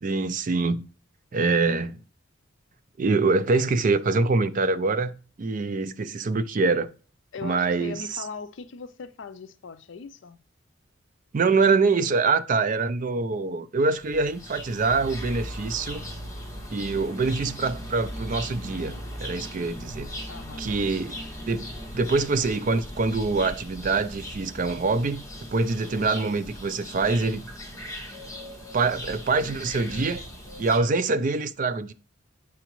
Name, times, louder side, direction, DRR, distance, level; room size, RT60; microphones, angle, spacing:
voice 1, 0.0-0.8 1.3-2.0 3.0-6.9 7.4-8.2 11.3-16.0 16.7-18.9 19.2-20.1 20.6-25.2 25.5-27.5 28.7-30.2 30.6-31.9, right 3 dB, 40° right, 0.4 m, -25 dB
voice 2, 7.3-10.4 20.3-20.7, left 4 dB, 65° left, 0.5 m, -39 dB
sound 1, 13.9-30.8, equal, 15° left, 1.7 m, -38 dB
8.0 x 4.8 x 3.0 m
head